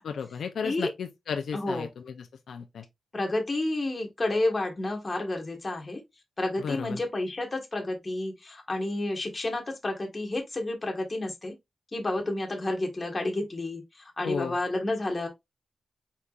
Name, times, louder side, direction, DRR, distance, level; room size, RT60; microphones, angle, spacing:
voice 1, 0.0-2.8 6.6-7.0 14.2-14.6, left 6 dB, 85° left, 0.5 m, -34 dB
voice 2, 1.5-1.9 3.1-6.0 6.4-11.5 11.9-15.3, left 2 dB, 25° left, 1.5 m, -30 dB
4.6 x 4.2 x 2.4 m
wide cardioid pair, 120°, 0 cm